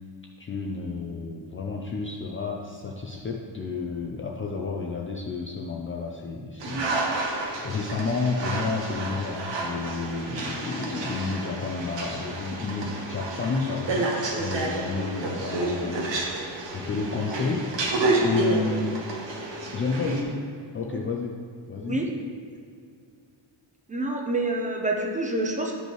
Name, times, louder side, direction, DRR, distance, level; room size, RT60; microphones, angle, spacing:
voice 1, 0.4-7.2 7.6-16.4 16.7-17.7 18.2-19.1 19.7-20.5 20.7-21.4 21.7-22.1, left 4 dB, 30° left, -1 dB, 0.4 m, -31 dB
sound 1, 6.6-20.2, right 2 dB, 65° right, 1.2 m, -30 dB
voice 2, 23.9-25.7, right 2 dB, 15° right, 1 dB, 0.6 m, -27 dB
10.5 x 5.4 x 3.0 m, 2.3 s
wide cardioid pair, 170°, 48 cm